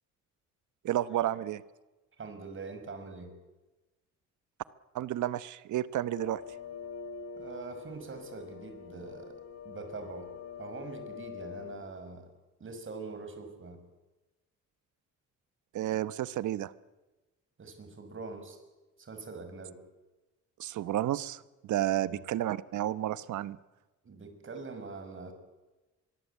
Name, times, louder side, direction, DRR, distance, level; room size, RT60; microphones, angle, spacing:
voice 1, 0.8-1.6 4.9-6.4 15.7-16.7 20.6-23.6, right 13 dB, 75° right, 16 dB, 1.0 m, -31 dB
voice 2, 2.2-3.4 7.4-9.4 9.6-10.3 10.6-12.3 12.6-13.9 17.6-18.6 19.0-19.8 22.0-22.2 24.0-25.3, right 4 dB, 40° right, 7 dB, 6.0 m, -43 dB
sound 1, 6.1-11.8, left 6 dB, 55° left, 5.9 m, -45 dB
24.5 x 22.5 x 8.4 m, 1.1 s
cardioid pair, 90°, 30 cm